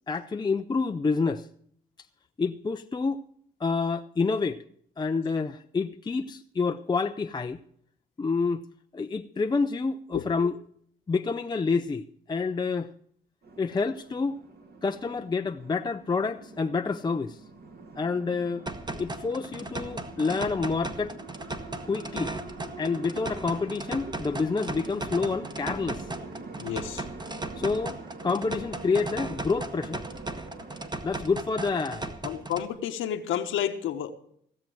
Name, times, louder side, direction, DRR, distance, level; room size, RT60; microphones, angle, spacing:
voice 1, 0.1-1.5 2.4-3.2 3.6-4.6 5.0-7.6 8.2-8.6 8.9-10.5 11.1-12.9 13.6-14.4 14.8-17.4 18.0-18.7 18.9-21.2 21.9-22.3 22.8-26.1 27.6-30.0 31.0-32.1, left 4 dB, 20° left, 0.5 m, -28 dB
sound 1, 13.4-30.9, right 3 dB, 50° right, 2.5 m, -44 dB
sound 2, 18.7-32.7, right 2 dB, 20° right, 1.3 m, -37 dB
voice 2, 26.6-27.0 32.2-34.1, left 10 dB, 85° left, 1.2 m, -30 dB
16.5 x 7.5 x 7.7 m
cardioid pair, 90°, 20 cm